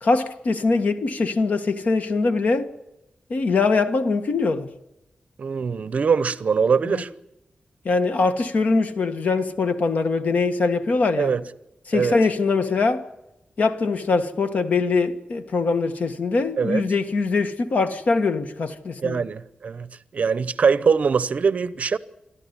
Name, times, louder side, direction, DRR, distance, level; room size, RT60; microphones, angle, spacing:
voice 1, 0.0-2.7 3.3-4.7 6.9-7.0 7.8-11.3 11.9-13.0 13.6-19.2, left 4 dB, 65° left, 1.5 m, -22 dB
voice 2, 5.4-7.1 11.2-11.4 11.9-12.1 16.6-16.8 19.0-22.0, right 5 dB, 60° right, 0.8 m, -22 dB
26.5 x 13.0 x 9.8 m
wide cardioid pair, 150°, 3 cm